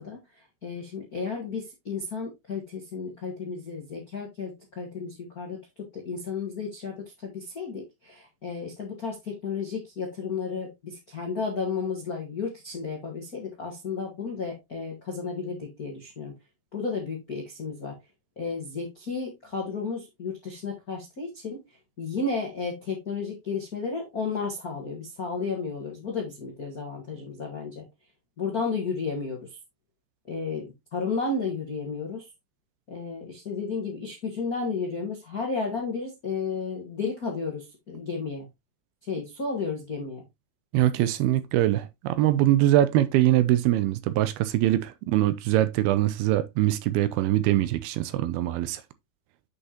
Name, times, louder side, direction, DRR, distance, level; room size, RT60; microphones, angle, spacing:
voice 1, 0.0-16.3 16.7-18.0 18.3-27.9 28.4-29.6 30.3-32.3 32.9-38.5 39.0-40.3, left 4 dB, 55° left, 1.0 m, -33 dB
voice 2, 40.7-48.8, right 14 dB, 80° right, 2.4 m, -23 dB
8.1 x 6.5 x 2.9 m
omnidirectional pair, 4.6 m